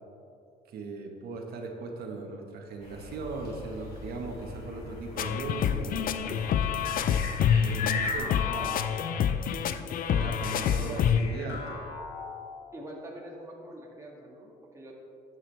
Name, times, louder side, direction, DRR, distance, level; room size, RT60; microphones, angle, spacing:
voice 1, 0.7-6.4 7.6-9.2 10.1-11.8, right 3 dB, 65° right, 2 dB, 1.7 m, -39 dB
sound 1, 2.8-8.2, left 4 dB, 70° left, 2.6 m, -38 dB
sound 2, 5.2-11.2, left 8 dB, 55° left, 0.5 m, -27 dB
sound 3, 7.0-9.5 10.4-12.9, left 4 dB, 90° left, 1.7 m, -43 dB
voice 2, 10.8-11.2 12.7-14.9, right 1 dB, 15° right, -3 dB, 2.0 m, -44 dB
13.0 x 9.2 x 3.5 m, 2.6 s
cardioid pair, 110°, 17 cm